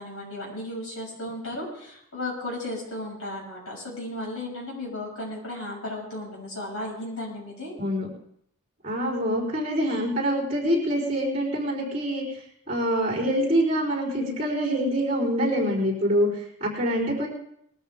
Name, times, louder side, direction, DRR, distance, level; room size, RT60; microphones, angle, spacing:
voice 1, 0.0-7.7, left 1 dB, 80° left, -2 dB, 6.5 m, -35 dB
voice 2, 7.8-8.1 8.8-12.2 12.7-17.3, equal, 30° right, -5 dB, 4.3 m, -25 dB
20.0 x 13.5 x 3.6 m, 0.72 s
head